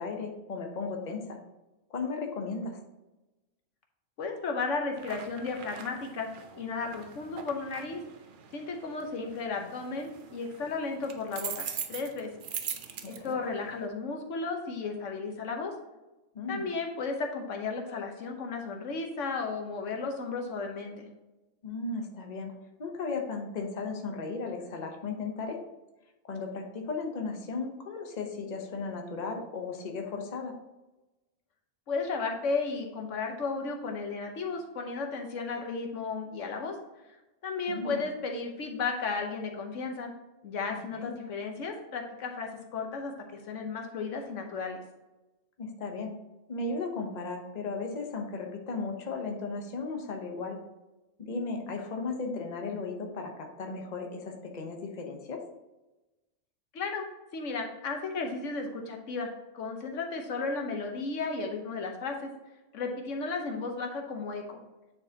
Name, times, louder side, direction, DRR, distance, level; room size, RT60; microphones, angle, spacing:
voice 1, 0.0-1.4 1.9-2.8 13.0-13.3 16.3-16.6 21.6-22.5 22.8-25.6 26.2-30.5 37.7-38.0 40.7-41.1 45.6-46.1 46.5-50.6 51.2-55.4, left 4 dB, 40° left, 3 dB, 0.9 m, -35 dB
voice 2, 4.2-6.3 6.5-8.0 8.5-12.3 13.0-15.7 16.5-21.1 31.9-36.7 37.4-40.1 40.4-44.8 56.7-57.1 57.3-59.3 59.5-62.3 62.7-64.6, left 4 dB, 90° left, 3 dB, 1.3 m, -34 dB
sound 1, 5.0-13.9, right 7 dB, 55° right, 0.7 m, -42 dB
9.4 x 4.6 x 2.8 m, 1.1 s
omnidirectional pair, 1.2 m